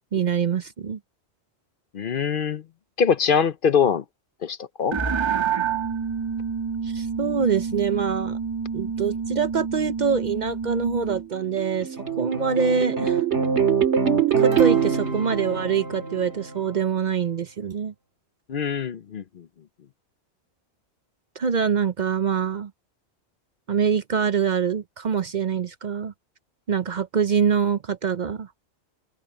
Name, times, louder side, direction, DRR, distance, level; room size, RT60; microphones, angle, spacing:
voice 1, 0.1-1.0 6.8-8.4 8.7-13.2 14.4-17.9 21.4-22.7 23.7-26.1 26.7-28.5, right 6 dB, 50° right, 0.7 m, -25 dB
voice 2, 1.9-2.6 3.0-4.0 4.4-5.0 18.5-19.4, left 7 dB, 55° left, 0.8 m, -23 dB
sound 1, 4.9-11.3, right 6 dB, 25° right, 1.8 m, -28 dB
sound 2, 11.3-16.7, right 7 dB, 80° right, 2.3 m, -23 dB
open air
omnidirectional pair, 1.1 m